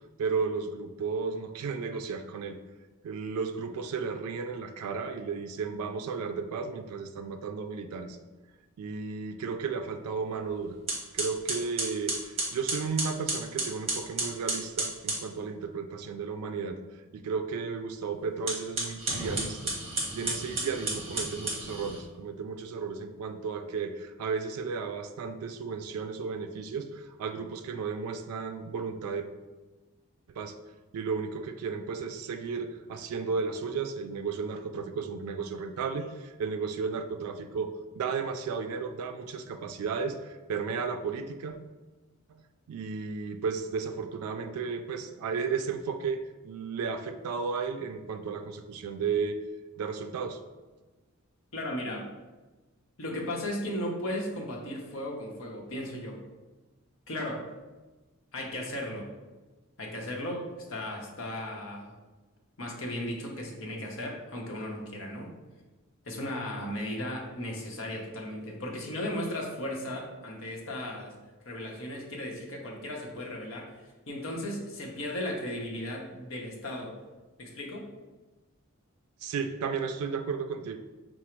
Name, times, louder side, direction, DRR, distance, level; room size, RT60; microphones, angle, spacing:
voice 1, 0.2-2.6 3.0-8.2 8.8-10.8 11.1-16.8 17.1-19.7 20.1-29.3 30.3-30.6 30.9-41.6 42.3-49.4 49.8-50.4 79.2-80.8, right 5 dB, 90° right, 8 dB, 0.3 m, -34 dB
sound 1, 10.3-10.5 10.9-15.3 18.3-22.0, right 2 dB, 25° right, 1.0 m, -32 dB
voice 2, 51.5-52.1 53.0-56.2 57.1-57.4 58.3-59.1 59.8-61.9 62.6-65.3 66.0-71.1 71.4-73.7 74.1-76.9 77.4-77.8, left 1 dB, 65° left, -1 dB, 0.8 m, -36 dB
4.8 x 2.0 x 4.4 m, 1.2 s
head